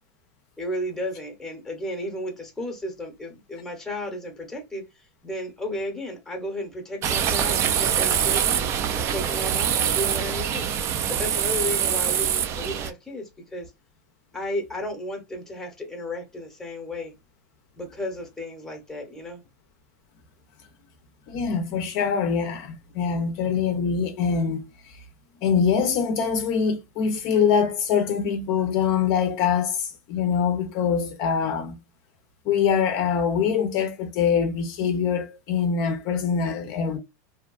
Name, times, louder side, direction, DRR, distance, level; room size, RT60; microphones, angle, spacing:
voice 1, 0.6-8.6 8.9-10.7 11.1-13.7 14.3-17.1 17.8-19.4, left 1 dB, 5° left, 0.8 m, -33 dB
sound 1, 7.0-12.9, right 9 dB, 30° right, 0.3 m, -24 dB
voice 2, 21.3-25.0 25.4-31.8 32.5-37.0, left 6 dB, 45° left, 0.5 m, -24 dB
2.7 x 2.2 x 2.3 m
supercardioid pair, 135°, 9 cm